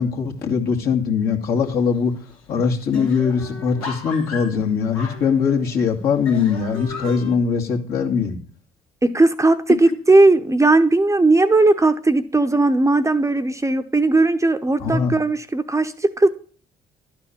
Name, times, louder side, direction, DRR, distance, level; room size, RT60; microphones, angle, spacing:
voice 1, 0.0-2.1 2.5-8.4 14.8-15.1, left 6 dB, 60° left, 0 dB, 2.0 m, -21 dB
sound 1, 1.5-2.0 2.3-2.4 2.6-5.8 6.2-7.3, left 5 dB, 80° left, 1.8 m, -35 dB
voice 2, 9.0-16.3, right 2 dB, 15° right, 9 dB, 0.9 m, -17 dB
11.5 x 4.5 x 7.0 m, 0.42 s
hypercardioid pair, 50°, 18 cm